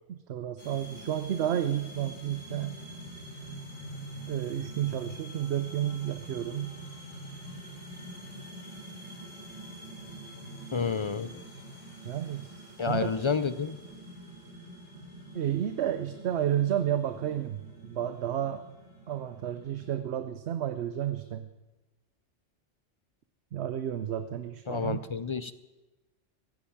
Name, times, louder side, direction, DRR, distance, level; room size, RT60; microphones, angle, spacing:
voice 1, 0.1-2.8 4.3-6.7 12.0-12.5 12.9-13.6 15.3-18.7 19.1-21.5 23.5-25.0, right 10 dB, 65° right, 10 dB, 0.9 m, -31 dB
sound 1, 0.6-19.9, right 1 dB, 85° left, 4.6 m, -45 dB
voice 2, 10.7-11.4 12.8-13.8 24.7-25.5, left 5 dB, 50° left, 14 dB, 0.3 m, -30 dB
16.0 x 10.0 x 8.6 m, 1.1 s
omnidirectional pair, 1.2 m